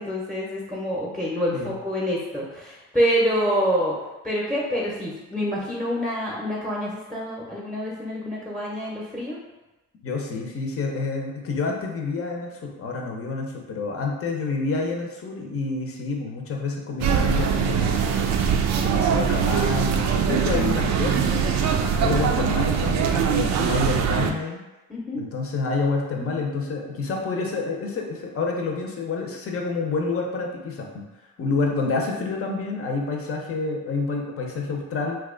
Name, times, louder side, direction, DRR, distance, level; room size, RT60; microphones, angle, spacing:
voice 1, 0.0-4.0 4.2-9.4 24.9-25.2, equal, 5° left, -4 dB, 0.8 m, -26 dB
voice 2, 10.0-18.4 18.8-24.6 25.1-31.0 31.4-35.2, left 3 dB, 50° left, 1 dB, 0.7 m, -28 dB
sound 1, 17.0-24.3, right 7 dB, 65° right, 0.4 m, -22 dB
2.9 x 2.3 x 3.7 m, 1.1 s
cardioid pair, 90°, 30 cm